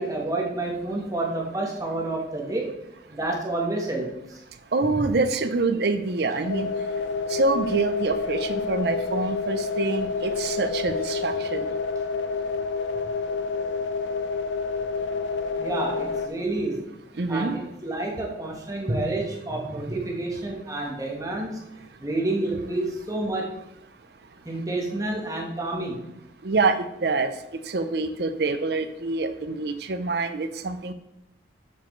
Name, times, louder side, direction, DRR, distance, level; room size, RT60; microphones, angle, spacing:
voice 1, 0.0-2.7 3.1-4.4 15.6-16.8 17.3-21.6 22.0-23.6 24.4-26.1, right 2 dB, 20° right, -1 dB, 1.2 m, -29 dB
voice 2, 4.7-6.7 7.3-11.8 17.2-17.6 26.4-27.3 27.7-30.9, right 3 dB, 60° right, 9 dB, 0.6 m, -26 dB
sound 1, 6.4-16.3, left 4 dB, 75° left, 0.5 m, -28 dB
8.3 x 7.4 x 3.2 m, 0.86 s
head